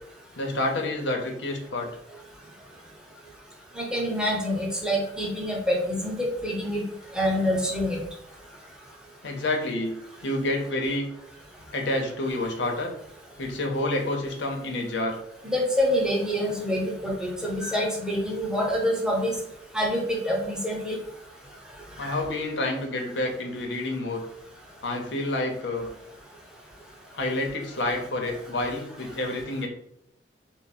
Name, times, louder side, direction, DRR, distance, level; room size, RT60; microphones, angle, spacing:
voice 1, 0.3-1.9 9.2-9.9 10.2-11.1 11.7-12.9 13.4-15.2 22.0-24.2 24.8-25.9 27.1-29.7, left 2 dB, 80° left, 2 dB, 0.7 m, -28 dB
voice 2, 3.8-6.8 7.1-8.0 15.4-19.3 19.7-21.0 22.0-22.2, equal, 5° right, -2 dB, 0.8 m, -26 dB
3.4 x 2.0 x 4.1 m, 0.78 s
head